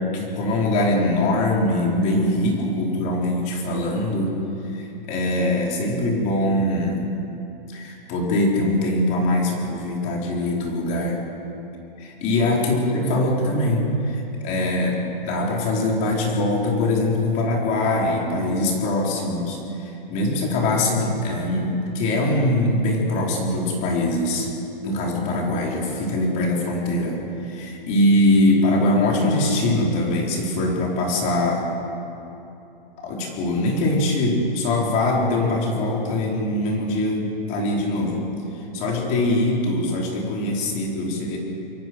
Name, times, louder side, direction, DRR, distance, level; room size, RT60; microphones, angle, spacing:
voice 1, 0.0-4.3 4.7-7.0 7.7-11.2 12.0-24.5 24.8-31.7 33.0-38.3 38.5-41.4, left 1 dB, 25° left, -1 dB, 4.2 m, -22 dB
26.5 x 23.0 x 6.2 m, 2.9 s
hypercardioid pair, 160°, 29 cm